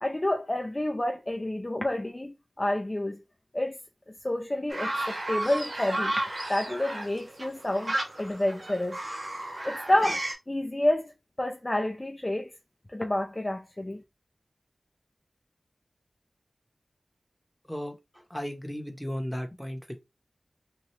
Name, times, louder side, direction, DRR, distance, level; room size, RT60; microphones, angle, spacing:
voice 1, 0.0-3.2 3.5-3.8 4.2-6.1 6.5-9.0 9.6-11.1 11.4-12.5 12.9-14.0, left 1 dB, 30° left, 0.4 m, -29 dB
sound 1, 4.7-10.3, right 1 dB, 55° right, 1.0 m, -33 dB
voice 2, 17.6-20.0, equal, 5° left, 0.8 m, -35 dB
3.0 x 2.3 x 3.1 m
cardioid pair, 45°, 0 cm